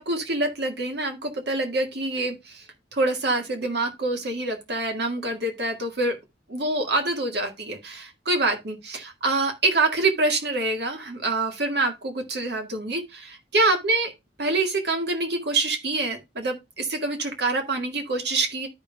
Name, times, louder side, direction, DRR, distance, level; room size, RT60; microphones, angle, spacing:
voice 1, 0.0-2.7 2.9-6.2 6.5-14.1 14.4-18.7, right 2 dB, 65° right, 1.8 m, -26 dB
13.0 x 5.2 x 2.2 m
head